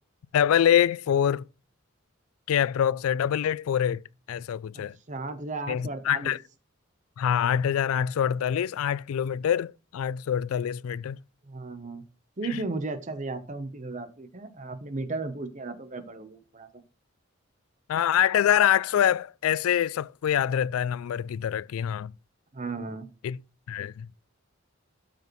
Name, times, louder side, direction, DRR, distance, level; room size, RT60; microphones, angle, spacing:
voice 1, 0.3-1.4 2.5-5.0 5.7-6.4 7.2-11.2 12.5-12.6 17.9-22.1 23.2-23.4 23.7-24.1, left 9 dB, 85° left, 0.3 m, -25 dB
voice 2, 4.7-6.3 11.4-12.0 12.4-16.7 22.5-23.1, right 3 dB, 35° right, 0.9 m, -35 dB
12.0 x 5.2 x 3.1 m
head